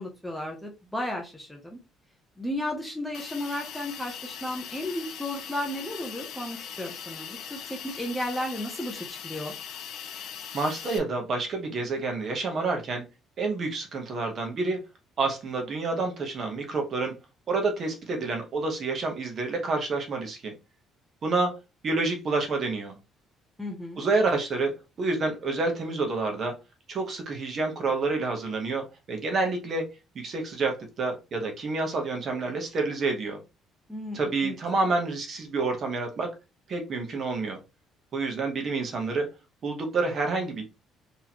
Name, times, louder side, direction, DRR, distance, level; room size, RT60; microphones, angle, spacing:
voice 1, 0.0-1.8 2.4-9.5 23.6-24.1 33.9-34.6, left 1 dB, 5° left, 1 dB, 0.7 m, -34 dB
Hiss, 3.1-11.0, left 8 dB, 55° left, 0.7 m, -40 dB
voice 2, 10.5-13.0 13.4-14.8 15.2-17.1 17.5-20.5 21.2-21.6 21.8-22.9 24.0-24.7 25.0-26.5 26.9-29.9 30.1-33.4 34.1-36.3 36.7-37.6 38.1-39.3 39.6-40.6, right 3 dB, 35° right, 3 dB, 1.0 m, -28 dB
4.1 x 3.0 x 2.9 m, 0.27 s
cardioid pair, 175°, 0 cm